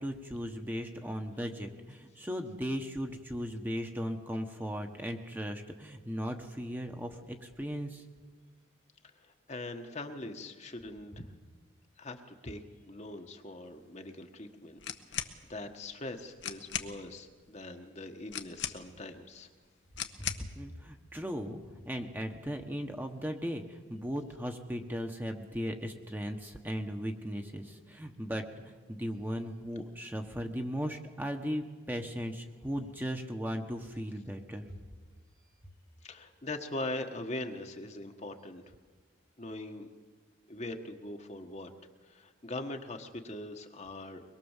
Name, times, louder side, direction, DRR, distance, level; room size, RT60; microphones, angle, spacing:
voice 1, 0.0-8.0 20.2-34.7, equal, 10° right, 4 dB, 1.3 m, -37 dB
voice 2, 9.1-11.3 12.0-14.8 15.1-19.5 36.0-38.7 39.4-39.9 40.5-41.7 42.0-44.2, left 2 dB, 35° left, 4 dB, 1.4 m, -42 dB
sound 1, 14.8-15.4 16.1-16.2 16.4-16.9 18.3-19.1 19.9-20.5, left 9 dB, 55° left, 1.3 m, -37 dB
23.5 x 22.0 x 7.4 m, 1.4 s
head